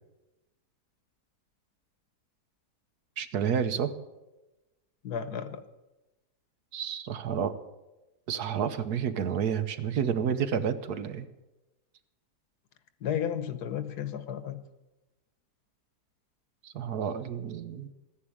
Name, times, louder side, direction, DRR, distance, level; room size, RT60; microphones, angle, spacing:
voice 1, 3.2-3.9 6.7-7.5 8.3-11.3 16.6-17.9, right 7 dB, 75° right, 11 dB, 1.5 m, -30 dB
voice 2, 5.0-5.6 13.0-14.6, left 9 dB, 75° left, 12 dB, 1.6 m, -33 dB
15.0 x 10.0 x 8.5 m, 1.0 s
omnidirectional pair, 1.7 m